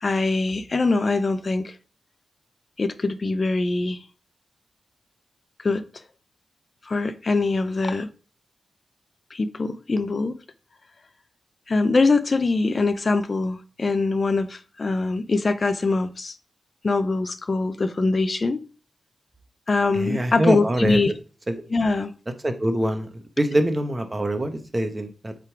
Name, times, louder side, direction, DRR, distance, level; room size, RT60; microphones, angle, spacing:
voice 1, 0.0-1.7 2.8-4.0 5.6-5.9 6.9-8.1 9.3-10.4 11.7-16.3 16.8-18.6 19.7-21.1 21.7-22.1, left 3 dB, 40° left, 0.6 m, -23 dB
voice 2, 19.9-21.0 21.5-21.6 22.4-25.3, right 1 dB, 25° right, 1.0 m, -24 dB
8.0 x 3.8 x 4.6 m
wide cardioid pair, 100°, 0 cm